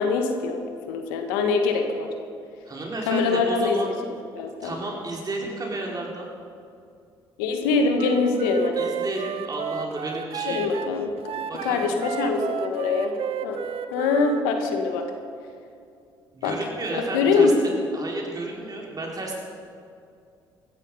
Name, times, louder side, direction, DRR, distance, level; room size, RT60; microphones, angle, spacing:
voice 1, 0.0-2.1 3.1-4.0 4.3-4.7 7.4-8.9 10.5-11.3 11.6-13.1 13.4-13.6 13.9-15.0 16.4-16.6 16.9-17.8, left 4 dB, 85° left, 4 dB, 1.5 m, -23 dB
voice 2, 2.7-3.9 4.6-6.3 8.8-10.7 11.5-11.9 16.3-17.5 17.9-19.4, right 2 dB, 35° right, -1 dB, 4.4 m, -32 dB
Wind instrument woodwind instrument, 7.9-14.5, right 8 dB, 60° right, 0.8 m, -32 dB
16.0 x 13.5 x 5.6 m, 2.4 s
hypercardioid pair, 60°, 11 cm